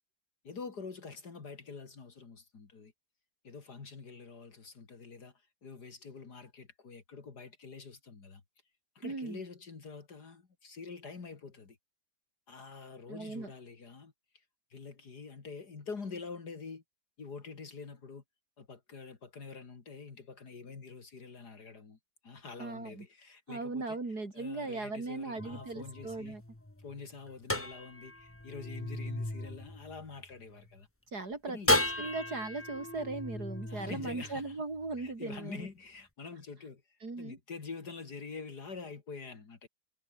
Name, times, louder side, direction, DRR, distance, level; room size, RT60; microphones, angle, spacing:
voice 1, 0.4-2.9 3.4-8.4 8.9-11.8 12.5-14.1 14.7-16.8 17.2-18.2 18.6-24.0 24.3-26.4 26.8-30.9 31.5-32.1 33.7-34.6 35.0-39.7, left 4 dB, 70° left, 3.1 m, -46 dB
voice 2, 9.0-9.4 13.1-13.5 22.6-23.1 23.5-26.4 31.1-35.7 37.0-37.4, right 3 dB, 65° right, 4.7 m, -38 dB
sound 1, 25.4-30.7 31.7-35.0, left 1 dB, 10° left, 1.3 m, -35 dB
omnidirectional pair, 1.8 m